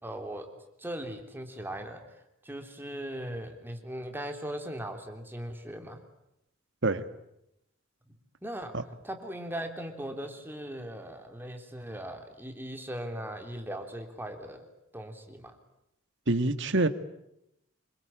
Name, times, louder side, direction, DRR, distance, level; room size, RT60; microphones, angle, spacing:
voice 1, 0.0-0.5 0.8-2.0 2.4-6.0 8.1-8.7 9.0-14.6 14.9-15.6, right 1 dB, 10° right, 5 dB, 3.3 m, -39 dB
voice 2, 16.3-16.9, right 2 dB, 60° right, 11 dB, 1.8 m, -25 dB
26.5 x 24.0 x 9.0 m, 0.82 s
head